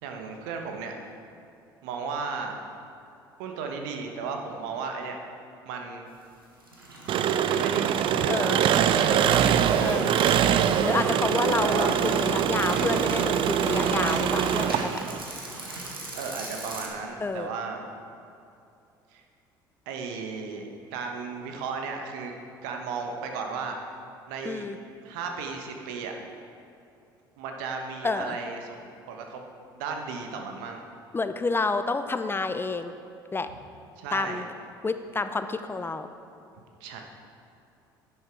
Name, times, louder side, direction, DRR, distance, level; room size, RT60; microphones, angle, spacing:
voice 1, 0.0-1.1 1.8-2.6 3.4-5.2 5.6-6.1 7.4-9.5 10.3-11.0 11.6-11.9 12.5-12.8 16.1-17.8 19.1-19.2 19.9-22.3 22.6-23.8 24.3-24.6 25.0-26.1 27.4-28.8 29.1-29.4 29.7-30.8 34.0-34.4 36.8-37.0, right 5 dB, 65° right, 3 dB, 1.2 m, -35 dB
sound 1, 6.4-16.9, right 1 dB, 90° right, 1.4 m, -40 dB
Engine, 7.1-15.2, right 9 dB, 45° right, 0.5 m, -23 dB
voice 2, 8.3-8.6 9.8-10.2 10.8-15.0 17.2-17.5 24.4-24.8 28.0-28.4 31.1-32.9 33.3-33.5 34.1-34.5 34.8-36.1, left 3 dB, 20° left, 10 dB, 0.5 m, -29 dB
10.5 x 9.3 x 4.6 m, 2.6 s
figure-of-eight pair, 60°, 12 cm